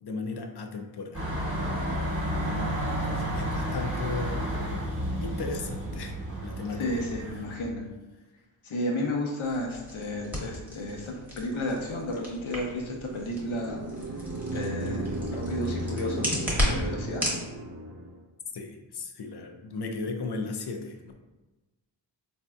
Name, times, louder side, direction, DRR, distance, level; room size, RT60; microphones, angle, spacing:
voice 1, 0.0-1.8 2.4-4.8 5.2-6.2 6.4-7.0 18.5-21.1, left 4 dB, 60° left, 4 dB, 0.5 m, -36 dB
sound 1, 1.1-7.6, right 1 dB, 30° right, 1.1 m, -31 dB
voice 2, 6.8-7.9 8.6-13.8 14.5-17.2, left 1 dB, 90° left, 0 dB, 0.7 m, -32 dB
sound 2, 9.4-17.4, equal, 5° right, 1.0 m, -34 dB
sound 3, 13.2-18.2, right 1 dB, 45° right, 0.4 m, -34 dB
4.2 x 2.6 x 2.3 m, 1.1 s
wide cardioid pair, 95°, 47 cm